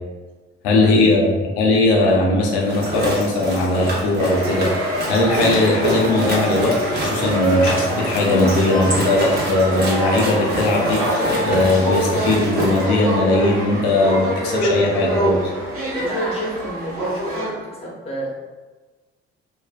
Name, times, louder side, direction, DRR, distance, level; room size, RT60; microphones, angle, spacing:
voice 1, 0.6-15.4, left 2 dB, 80° left, -1 dB, 0.6 m, -19 dB
sound 1, 2.6-12.8, right 1 dB, 30° right, 0.9 m, -27 dB
sound 2, 4.2-17.5, right 1 dB, 65° right, 1.1 m, -24 dB
voice 2, 15.9-17.4 17.7-18.3, equal, 20° left, -4 dB, 1.0 m, -32 dB
2.4 x 2.2 x 2.3 m, 1.3 s
hypercardioid pair, 45°, 32 cm